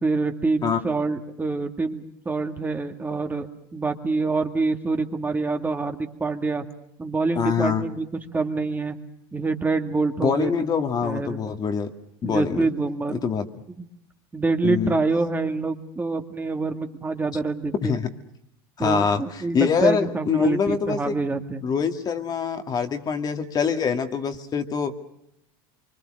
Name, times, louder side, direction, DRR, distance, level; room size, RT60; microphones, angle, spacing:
voice 1, 0.0-6.6 7.0-8.1 8.3-9.0 9.3-10.6 11.0-11.4 12.2-13.2 14.3-18.0 18.8-21.6, right 3 dB, 15° right, 5 dB, 2.0 m, -26 dB
voice 2, 7.4-7.8 10.2-11.9 12.2-12.7 13.1-13.4 14.6-15.0 17.8-18.1 18.8-21.1 21.6-24.9, left 6 dB, 35° left, 6 dB, 2.2 m, -24 dB
25.5 x 25.0 x 6.5 m, 0.77 s
supercardioid pair, 110°, 12 cm